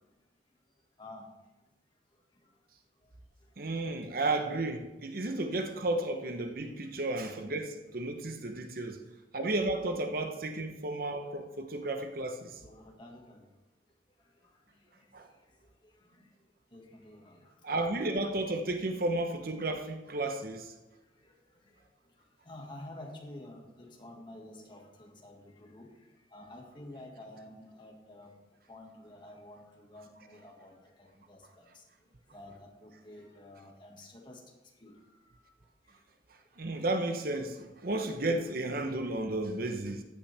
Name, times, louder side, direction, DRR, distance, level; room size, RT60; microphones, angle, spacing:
voice 1, 3.6-9.0 9.3-12.6 15.1-15.3 17.6-20.7 36.6-40.0, right 2 dB, 55° right, 0.9 m, -33 dB
voice 2, 7.2-7.6 12.6-13.4 16.7-17.4 22.5-25.9 26.3-28.3 28.7-31.6 32.3-34.4 34.8-34.9, left 1 dB, 25° left, 1.7 m, -49 dB
15.0 x 8.6 x 3.4 m
head